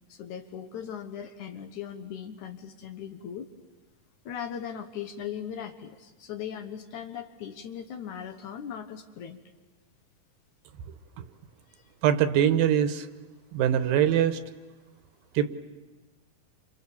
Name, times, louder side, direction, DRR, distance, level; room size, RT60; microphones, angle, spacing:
voice 1, 0.1-3.5 4.3-9.4 11.7-11.8, left 8 dB, 65° left, 7 dB, 2.2 m, -39 dB
voice 2, 12.0-13.1 13.5-14.4 15.4-15.5, right 10 dB, 75° right, 11 dB, 2.7 m, -22 dB
29.0 x 27.5 x 7.1 m, 1.2 s
omnidirectional pair, 4.2 m